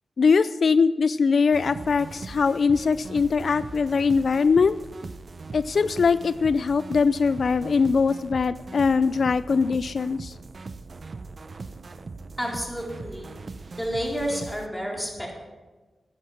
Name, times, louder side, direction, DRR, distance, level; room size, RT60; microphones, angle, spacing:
voice 1, 0.2-4.8 5.5-10.3, left 5 dB, 65° left, 15 dB, 0.3 m, -22 dB
sound 1, 1.5-14.7, right 3 dB, 55° right, 0.7 m, -40 dB
voice 2, 12.4-13.3 13.7-15.3, equal, 5° left, -1 dB, 3.9 m, -30 dB
10.5 x 9.5 x 7.0 m, 1.2 s
cardioid pair, 50°, 0 cm